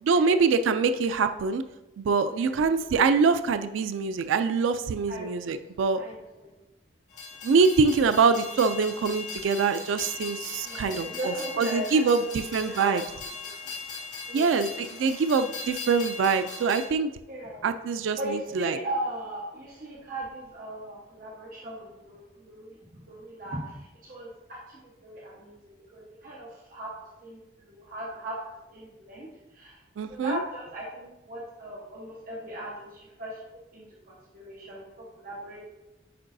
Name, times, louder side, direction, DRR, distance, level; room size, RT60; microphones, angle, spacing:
voice 1, 0.0-1.6 2.0-6.0 7.4-13.0 14.3-17.1 17.6-18.8 30.0-30.4, right 5 dB, 85° right, 10 dB, 0.3 m, -24 dB
voice 2, 2.2-2.7 5.1-6.5 10.6-13.0 13.3-13.5 14.3-14.7 17.3-17.6 18.2-26.9 27.2-29.8 30.1-33.4 33.7-35.6, right 1 dB, 45° right, -4 dB, 1.1 m, -38 dB
Train, 7.1-16.9, left 4 dB, 40° left, 1.9 m, -39 dB
8.5 x 5.2 x 2.6 m, 0.97 s
head